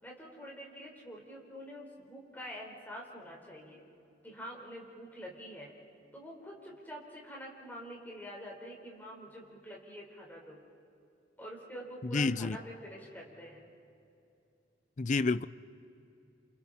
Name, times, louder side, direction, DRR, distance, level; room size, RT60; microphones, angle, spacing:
voice 1, 0.0-3.8 4.2-5.7 6.1-10.6 11.4-13.6, equal, 10° left, 4.6 m, -46 dB
voice 2, 12.0-12.6 15.0-15.5, left 3 dB, 40° left, 0.5 m, -29 dB
29.0 x 28.5 x 4.4 m
head